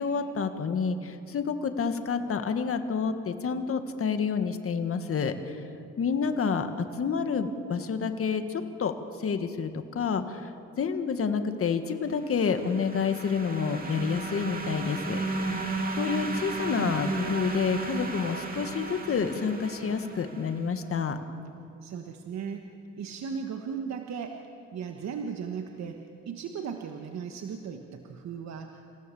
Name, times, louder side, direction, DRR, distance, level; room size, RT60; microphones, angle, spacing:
voice 1, 0.0-5.6 6.0-10.5 10.8-15.2 16.0-21.2, left 6 dB, 50° left, 8 dB, 1.7 m, -29 dB
sound 1, 12.1-20.7, right 2 dB, 30° right, 2.7 m, -34 dB
voice 2, 21.8-24.4 24.7-28.8, right 6 dB, 60° right, 4 dB, 1.4 m, -37 dB
27.5 x 16.0 x 7.1 m, 2.6 s
cardioid pair, 90°, 30 cm